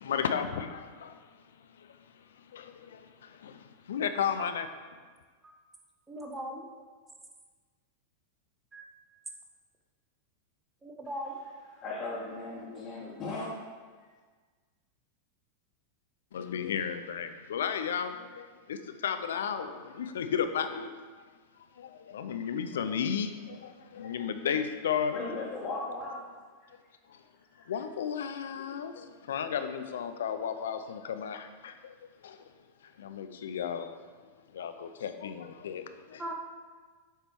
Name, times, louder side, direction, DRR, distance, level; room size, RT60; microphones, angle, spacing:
voice 1, 0.0-1.1 2.5-2.9 3.4-4.7 16.3-18.8 19.0-20.9 21.8-25.2 27.7-28.9 29.3-31.9 32.2-32.4 33.0-33.9 34.5-36.3, left 7 dB, 75° left, 9 dB, 0.5 m, -33 dB
voice 2, 6.1-6.6 8.7-8.9 10.8-11.3 36.2-36.3, equal, 15° right, 2 dB, 1.0 m, -38 dB
voice 3, 11.8-13.6 25.1-26.2, left 3 dB, 40° left, -8 dB, 1.5 m, -37 dB
7.4 x 3.4 x 4.5 m, 1.5 s
hypercardioid pair, 105°, 0 cm